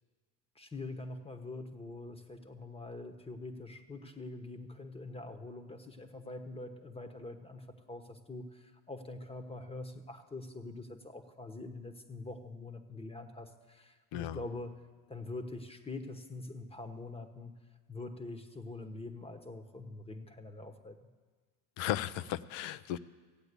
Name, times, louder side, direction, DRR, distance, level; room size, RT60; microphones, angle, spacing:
voice 1, 0.5-14.7 15.1-17.5 17.9-21.0, left 2 dB, 10° left, 7 dB, 1.1 m, -44 dB
voice 2, 21.8-23.0, left 12 dB, 65° left, 17 dB, 0.7 m, -35 dB
15.0 x 8.8 x 8.3 m, 1.4 s
supercardioid pair, 95°, 47 cm